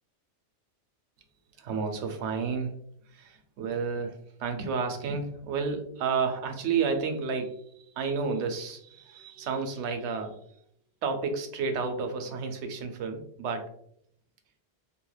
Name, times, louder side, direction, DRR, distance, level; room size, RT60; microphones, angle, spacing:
voice 1, 1.6-2.7 3.1-10.4 11.0-13.7, right 5 dB, 75° right, 6 dB, 0.8 m, -31 dB
3.2 x 2.5 x 2.2 m, 0.69 s
omnidirectional pair, 1.2 m